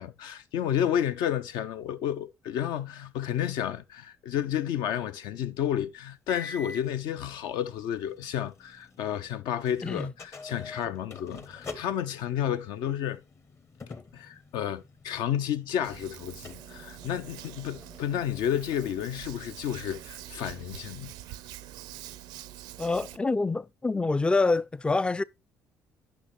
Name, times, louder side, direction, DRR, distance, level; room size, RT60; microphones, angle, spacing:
voice 1, 0.0-13.2 14.1-21.1, left 10 dB, 65° left, 0.6 m, -31 dB
sound 1, 6.3-9.4 9.6-20.8, left 3 dB, 35° left, 1.0 m, -48 dB
Hands, 15.8-23.2, right 14 dB, 65° right, 0.4 m, -45 dB
voice 2, 22.8-25.2, left 3 dB, 15° left, 0.3 m, -26 dB
10.0 x 5.6 x 3.1 m
hypercardioid pair, 50°, 8 cm